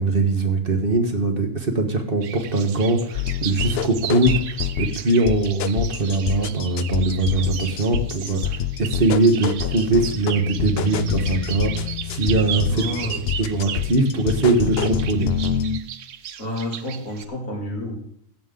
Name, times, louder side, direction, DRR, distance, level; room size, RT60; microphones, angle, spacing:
voice 1, 0.0-4.4 4.8-15.3, right 3 dB, 45° right, 4 dB, 1.6 m, -21 dB
sound 1, 2.2-17.2, right 9 dB, 70° right, 1.1 m, -35 dB
sound 2, 3.1-15.8, left 10 dB, 60° left, 0.8 m, -27 dB
voice 2, 12.6-13.2 16.4-17.9, left 1 dB, 80° left, -1 dB, 3.4 m, -30 dB
16.5 x 7.5 x 3.8 m, 0.71 s
omnidirectional pair, 1.4 m